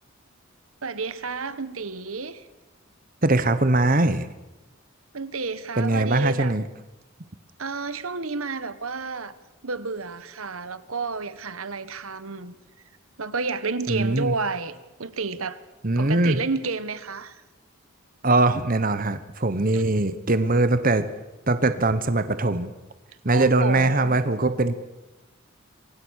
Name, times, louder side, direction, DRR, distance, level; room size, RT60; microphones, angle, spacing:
voice 1, 0.8-2.5 5.1-6.5 7.6-9.3 9.6-12.6 13.2-15.6 15.9-17.4 19.7-19.8 23.3-24.2, right 4 dB, 75° right, 14 dB, 1.3 m, -31 dB
voice 2, 3.2-4.3 5.8-6.6 13.9-14.3 15.8-16.4 18.2-21.1 21.5-22.7 23.2-24.7, right 2 dB, 40° right, 11 dB, 1.2 m, -21 dB
27.5 x 24.0 x 6.5 m, 1.0 s
head